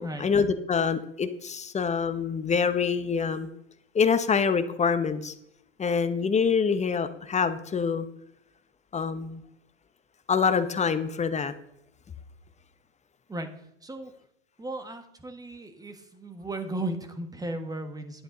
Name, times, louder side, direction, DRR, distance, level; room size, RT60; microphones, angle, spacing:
voice 1, 0.0-3.5 3.9-5.3 5.8-8.1 8.9-9.4 10.3-11.5, left 6 dB, 20° left, 12 dB, 0.9 m, -25 dB
voice 2, 14.6-18.2, right 1 dB, 10° right, 8 dB, 1.4 m, -35 dB
11.5 x 9.0 x 3.9 m, 0.80 s
hypercardioid pair, 95°, 38 cm